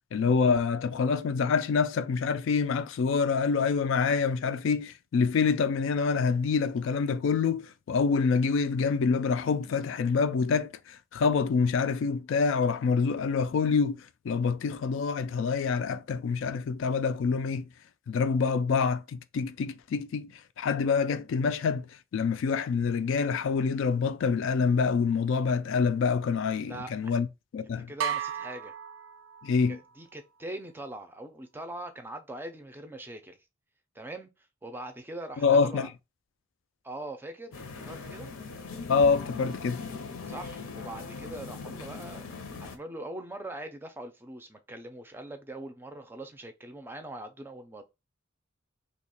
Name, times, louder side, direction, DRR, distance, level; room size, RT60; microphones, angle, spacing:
voice 1, 0.1-17.6 18.1-20.3 20.6-21.9 22.1-27.3 27.5-27.9 29.4-29.8 35.4-35.9 38.9-39.8, left 5 dB, 65° left, 0.3 m, -26 dB
voice 2, 26.6-27.1 27.9-28.7 29.7-33.4 33.9-35.9 36.8-38.3 40.3-47.8, right 1 dB, 10° right, 0.4 m, -42 dB
sound 1, 28.0-29.8, right 8 dB, 75° right, 0.4 m, -34 dB
sound 2, 37.5-42.8, left 4 dB, 90° left, 0.7 m, -40 dB
2.8 x 2.3 x 4.2 m
head